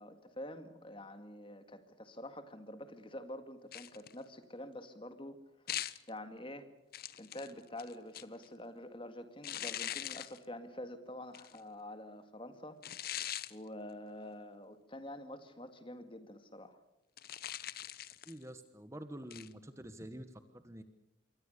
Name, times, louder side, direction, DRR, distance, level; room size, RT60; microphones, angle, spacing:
voice 1, 0.0-5.4 6.1-6.7 7.2-16.8, left 1 dB, 25° left, 9 dB, 2.1 m, -47 dB
sound 1, 3.7-4.2 5.7-6.1 6.9-8.5 9.4-10.4 11.3-11.6 12.8-13.5 17.2-18.4 19.3-19.5, left 11 dB, 45° left, 0.9 m, -41 dB
voice 2, 18.3-20.8, right 1 dB, 15° right, 9 dB, 1.2 m, -48 dB
27.0 x 23.5 x 6.7 m, 0.89 s
head